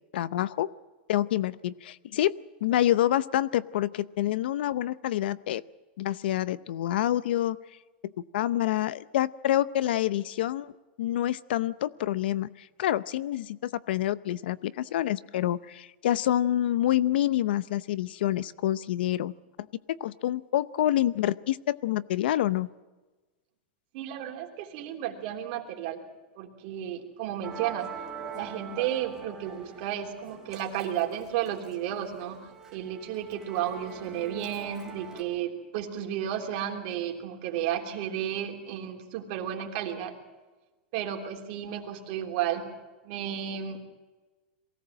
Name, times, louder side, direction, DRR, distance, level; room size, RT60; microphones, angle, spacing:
voice 1, 0.1-0.7 1.1-2.3 2.6-5.6 6.0-7.6 8.3-10.7 11.0-19.3 19.9-22.7, left 13 dB, 70° left, 18 dB, 0.7 m, -27 dB
voice 2, 23.9-26.0 26.3-27.9 28.3-32.4 32.7-40.1 40.9-42.7 43.0-43.8, right 10 dB, 50° right, 2 dB, 3.3 m, -33 dB
Musical instrument, 27.4-35.2, right 5 dB, 5° right, 4.4 m, -43 dB
23.0 x 17.0 x 7.5 m, 1.2 s
supercardioid pair, 155°, 6 cm